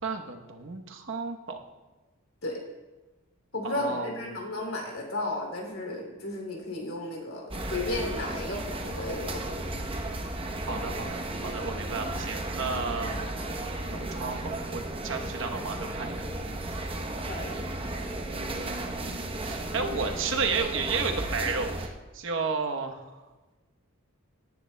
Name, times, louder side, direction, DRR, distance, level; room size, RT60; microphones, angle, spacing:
voice 1, 0.0-1.6 3.6-4.2 10.7-13.3 13.9-16.3 18.3-23.1, right 4 dB, 60° right, 4 dB, 1.0 m, -33 dB
voice 2, 3.5-9.7 17.2-17.5, left 2 dB, 75° left, 0 dB, 2.8 m, -34 dB
sound 1, 7.5-21.9, right 1 dB, 25° right, 0.8 m, -34 dB
18.0 x 9.5 x 2.2 m, 1.2 s
head